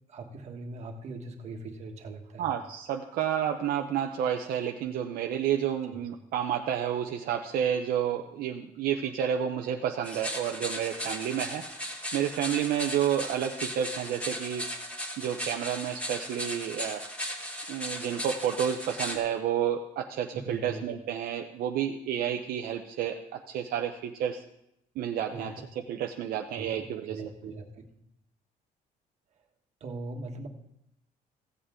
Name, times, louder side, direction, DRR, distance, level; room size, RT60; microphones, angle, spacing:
voice 1, 0.1-2.5 5.9-6.0 20.3-20.8 25.3-25.6 26.5-27.8 29.8-30.5, right 3 dB, 45° right, 3 dB, 1.4 m, -40 dB
voice 2, 2.4-11.7 12.1-14.7 15.2-17.0 17.7-24.4 25.0-25.5 25.9-27.2, right 9 dB, 75° right, 3 dB, 0.7 m, -30 dB
sound 1, 10.0-19.2, equal, 10° left, 1.5 m, -37 dB
15.5 x 8.0 x 3.7 m, 0.80 s
cardioid pair, 140°, 15 cm